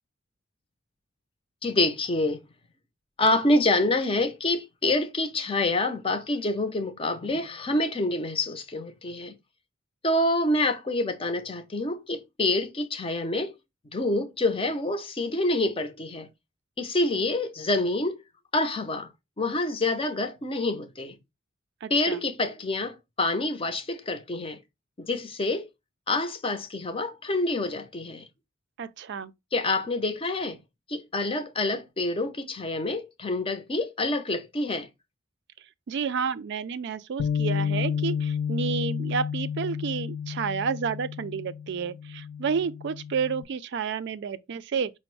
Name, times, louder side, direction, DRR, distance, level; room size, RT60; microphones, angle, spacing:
voice 1, 1.6-2.4 3.2-9.3 10.0-13.5 13.9-16.3 16.8-18.2 18.5-19.1 19.4-21.2 21.9-24.6 25.0-25.7 26.1-28.3 29.5-30.6 30.9-34.9, left 2 dB, 25° left, 0.6 m, -27 dB
voice 2, 21.8-22.2 28.8-29.3 35.9-44.9, right 6 dB, 60° right, 0.4 m, -30 dB
Bass guitar, 37.2-43.4, left 7 dB, 80° left, 0.5 m, -31 dB
5.0 x 2.0 x 4.5 m
head